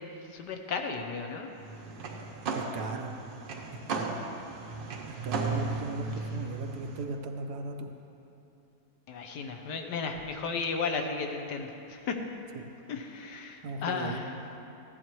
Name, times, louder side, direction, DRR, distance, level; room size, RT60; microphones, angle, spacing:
voice 1, 0.0-1.5 9.1-12.2 12.9-14.3, left 4 dB, 70° left, 4 dB, 1.4 m, -34 dB
sound 1, 1.6-7.0, right 4 dB, 85° right, 1.7 m, -36 dB
voice 2, 2.5-3.1 3.9-4.2 5.1-7.9 13.6-14.2, right 3 dB, 70° right, 4 dB, 1.2 m, -37 dB
14.5 x 10.5 x 3.1 m, 2.8 s
omnidirectional pair, 1.9 m